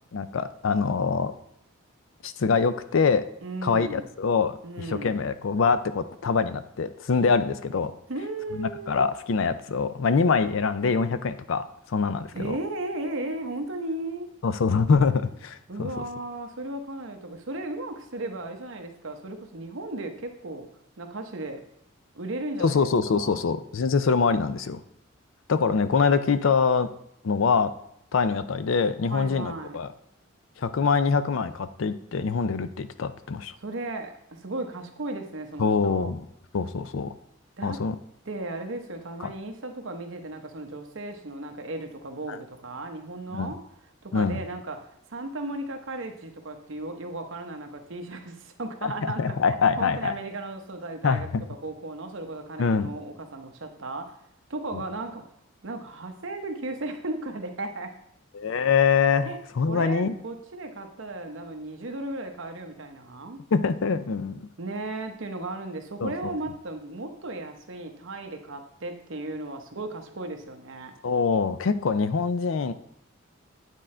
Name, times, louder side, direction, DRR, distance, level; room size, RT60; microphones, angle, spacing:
voice 1, 0.1-1.3 2.2-3.2 3.6-7.9 8.5-12.6 14.4-15.9 22.6-24.8 25.5-26.9 27.2-27.7 28.1-29.9 30.6-33.5 35.6-36.2 36.5-37.1 37.6-37.9 42.3-42.4 43.3-43.5 44.1-44.4 48.8-50.1 51.0-51.4 52.6-52.9 58.3-59.3 59.6-60.1 63.5-64.4 66.0-66.3 71.0-72.7, left 5 dB, 70° left, 12 dB, 0.4 m, -24 dB
voice 2, 3.4-4.1 4.6-5.2 8.1-9.0 12.3-14.3 15.7-20.7 21.0-21.6 22.1-23.4 29.0-29.8 33.6-36.2 37.6-37.8 38.3-43.6 44.0-54.2 54.5-55.2 55.6-57.9 59.2-59.4 59.7-63.4 64.6-70.9, right 2 dB, 70° right, 5 dB, 0.9 m, -35 dB
9.1 x 3.7 x 4.3 m, 0.75 s
head